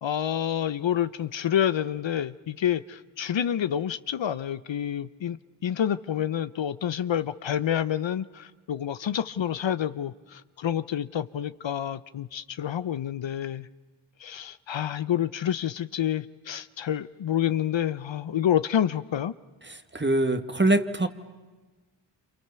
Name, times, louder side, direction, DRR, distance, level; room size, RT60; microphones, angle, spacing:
voice 1, 0.0-5.4 5.6-13.7 14.2-19.3, left 10 dB, 65° left, 14 dB, 0.8 m, -28 dB
voice 2, 19.7-21.1, right 2 dB, 25° right, 10 dB, 1.9 m, -24 dB
28.5 x 27.5 x 6.9 m, 1.3 s
cardioid pair, 50°, 48 cm